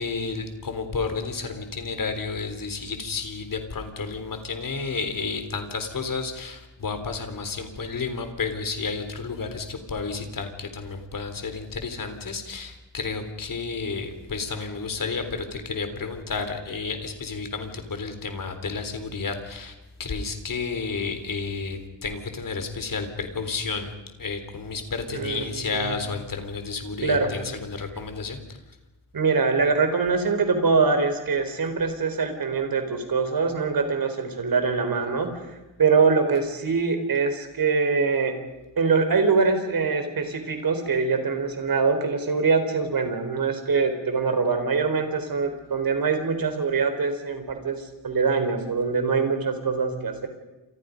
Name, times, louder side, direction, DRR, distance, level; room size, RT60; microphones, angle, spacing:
voice 1, 0.0-19.7 20.0-23.9 24.2-28.6, left 4 dB, 45° left, 7 dB, 3.8 m, -31 dB
voice 2, 25.1-25.9 27.0-27.3 29.1-35.4 35.8-38.3 38.8-50.3, right 4 dB, 50° right, 7 dB, 4.4 m, -23 dB
29.5 x 27.5 x 5.4 m, 1.0 s
wide cardioid pair, 160°, 45 cm